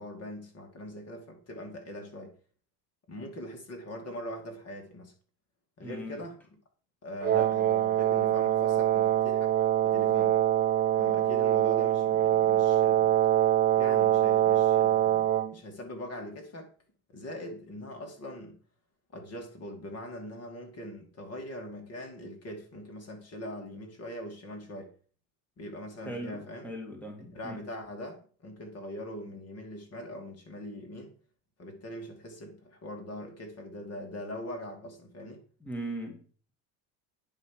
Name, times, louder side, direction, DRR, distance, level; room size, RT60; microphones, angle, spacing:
voice 1, 0.0-2.3 3.1-5.1 5.8-6.4 7.0-9.5 9.8-10.4 11.0-13.1 13.8-16.7 17.1-18.6 19.1-24.9 25.6-26.7 27.2-31.1 31.6-35.4, left 1 dB, 30° left, 2.5 m, -42 dB
voice 2, 5.8-6.2 26.0-27.6 35.6-36.2, right 1 dB, 5° left, 2.3 m, -39 dB
Wind instrument woodwind instrument, 7.2-15.5, right 12 dB, 25° right, 0.4 m, -24 dB
9.6 x 5.3 x 6.6 m
supercardioid pair, 120°, 46 cm